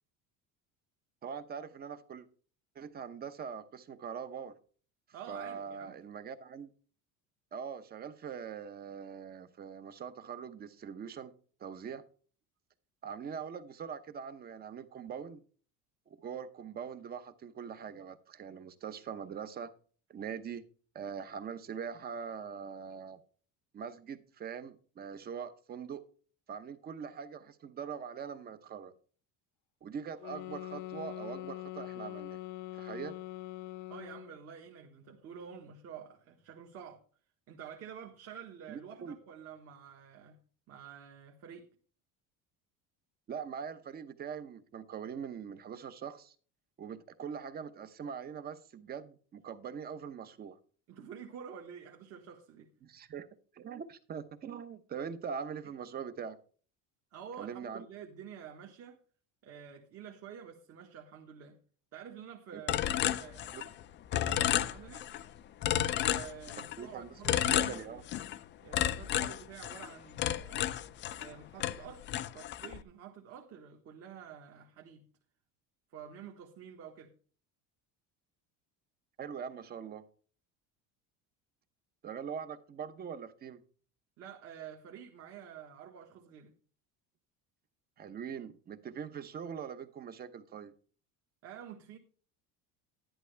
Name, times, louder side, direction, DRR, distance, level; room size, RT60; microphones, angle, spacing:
voice 1, 1.2-2.3 2.7-4.5 5.3-6.7 7.5-11.3 11.6-12.0 13.0-15.4 16.1-19.7 20.1-20.6 20.9-23.2 23.7-26.0 26.5-28.9 29.8-32.4 32.7-33.2 38.7-39.2 43.3-46.3 46.8-50.6 52.8-53.3 53.5-56.4 57.4-57.8 62.5-62.6 63.5-63.6 66.8-68.0 79.2-80.0 82.0-83.6 88.0-90.7, right 7 dB, 25° right, 0.9 m, -42 dB
voice 2, 5.1-5.9 33.9-37.0 37.5-40.4 40.7-41.7 50.9-52.7 57.1-59.0 59.4-61.6 61.9-63.7 64.1-65.1 66.0-68.0 68.6-70.8 71.1-75.1 75.9-77.1 84.2-86.5 91.4-92.0, right 8 dB, 45° right, 1.5 m, -49 dB
sound 1, 30.2-34.4, left 16 dB, 60° left, 0.9 m, -43 dB
sound 2, 62.7-63.8 64.1-65.2 65.6-66.8 67.2-68.4 68.7-71.3 71.6-72.8, left 12 dB, 35° left, 0.5 m, -32 dB
11.5 x 11.0 x 3.4 m
cardioid pair, 165°, 35 cm